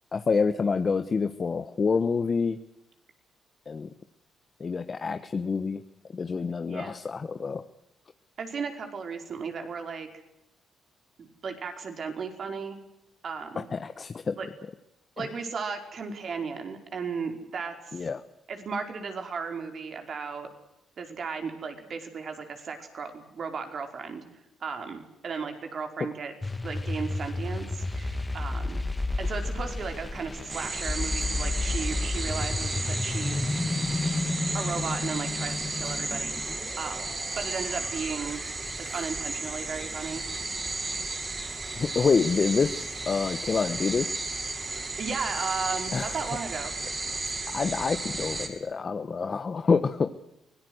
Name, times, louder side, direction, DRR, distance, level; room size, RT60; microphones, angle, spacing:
voice 1, 0.1-2.6 3.7-3.9 4.6-5.8 6.1-7.6 13.6-14.4 17.9-18.2 41.7-44.2 45.9-46.1 47.5-50.1, left 5 dB, 40° left, 9 dB, 1.2 m, -27 dB
voice 2, 6.7-7.0 8.4-10.1 11.2-12.8 13.2-13.7 14.4-14.5 15.2-18.0 18.5-20.5 21.0-24.2 24.6-26.3 26.6-28.8 29.2-33.7 34.5-37.1 37.3-38.4 38.8-40.2 45.0-46.7, right 5 dB, 50° right, 5 dB, 5.0 m, -35 dB
sound 1, 26.4-38.8, left 2 dB, 20° left, 2.0 m, -32 dB
sound 2, 30.5-48.5, right 3 dB, 30° right, 6.8 m, -34 dB
24.5 x 18.5 x 8.1 m, 0.86 s
cardioid pair, 90°, 0 cm